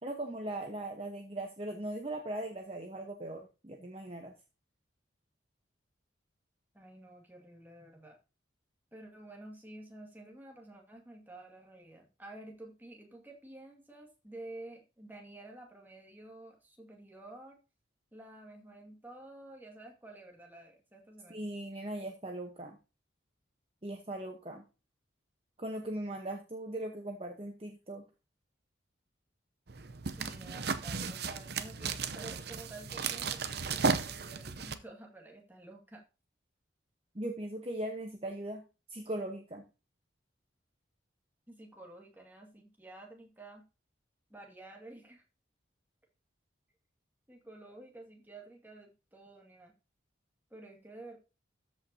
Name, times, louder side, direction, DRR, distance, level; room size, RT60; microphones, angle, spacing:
voice 1, 0.0-4.3 21.3-22.8 23.8-24.6 25.6-28.0 37.1-38.6 38.9-39.6, right 1 dB, 30° right, 3 dB, 1.0 m, -39 dB
voice 2, 6.7-8.2 8.9-17.6 18.1-21.4 30.1-36.0 41.5-43.6 44.3-45.2 47.3-49.7 50.5-51.2, right 2 dB, 10° right, 1 dB, 2.0 m, -51 dB
sound 1, 29.7-34.8, right 5 dB, 55° right, 0.7 m, -35 dB
13.5 x 5.5 x 2.8 m, 0.30 s
head